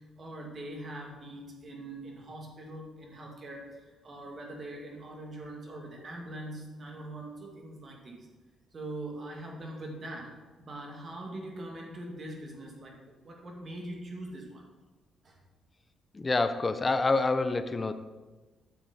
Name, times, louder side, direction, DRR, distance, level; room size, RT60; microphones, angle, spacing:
voice 1, 0.0-8.3 8.7-14.7 15.2-15.4, right 1 dB, 45° right, 0 dB, 2.2 m, -42 dB
voice 2, 16.1-17.9, left 3 dB, 25° left, 10 dB, 0.7 m, -27 dB
9.5 x 6.9 x 4.2 m, 1.2 s
cardioid pair, 90°, 0 cm